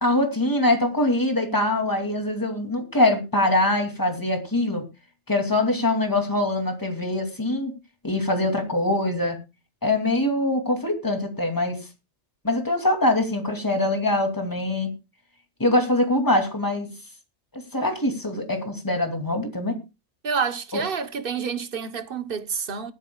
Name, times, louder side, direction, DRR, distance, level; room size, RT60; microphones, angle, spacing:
voice 1, 0.0-4.8 5.3-7.7 8.0-9.4 9.8-11.8 12.4-14.9 15.6-16.9 17.5-19.8 20.7-20.8, left 1 dB, 15° left, 2.7 m, -23 dB
voice 2, 20.2-22.9, right 5 dB, 55° right, 1.2 m, -28 dB
19.5 x 12.5 x 2.3 m
omnidirectional pair, 1.2 m